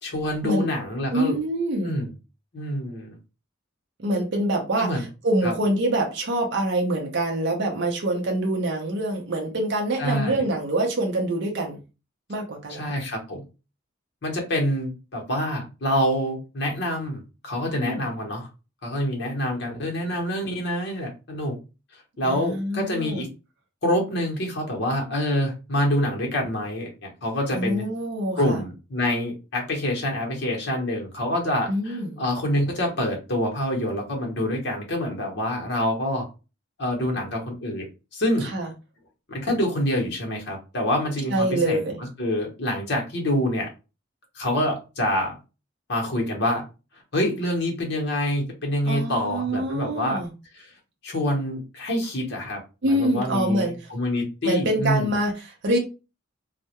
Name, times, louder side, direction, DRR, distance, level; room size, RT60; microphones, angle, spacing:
voice 1, 0.0-1.4 1.8-2.1 2.5-3.2 4.8-5.0 5.4-5.5 10.0-10.4 12.7-13.4 14.2-18.5 18.8-21.6 22.2-23.3 23.8-27.8 28.3-36.3 36.8-38.5 39.3-41.8 42.2-43.7 44.4-45.4 45.9-46.7 47.1-50.2 50.5-50.7 51.0-55.1, left 1 dB, 55° left, 0.8 m, -26 dB
voice 2, 1.1-2.0 4.0-11.8 12.3-12.9 17.7-18.0 22.2-23.3 27.5-28.6 31.7-32.2 38.4-38.7 41.3-42.0 48.9-50.3 52.8-53.8 54.4-55.8, right 1 dB, 60° right, 0.5 m, -25 dB
2.2 x 2.0 x 2.8 m
head